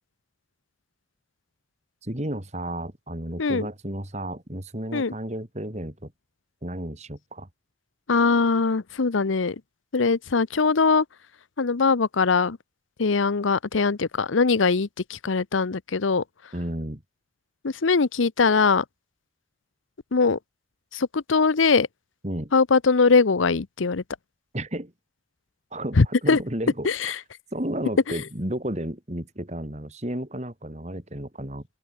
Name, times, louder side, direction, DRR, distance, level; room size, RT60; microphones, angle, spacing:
voice 1, 2.0-6.1 6.6-7.5 16.5-17.0 22.2-22.5 24.5-24.9 25.7-27.1 27.5-31.6, right 1 dB, 35° right, 3.1 m, -32 dB
voice 2, 8.1-9.6 9.9-11.0 11.6-12.6 13.0-16.2 17.6-18.8 20.1-20.4 20.9-21.9 22.5-24.0 26.0-26.4 26.8-27.2 28.1-28.2, left 4 dB, 90° left, 0.8 m, -21 dB
open air
head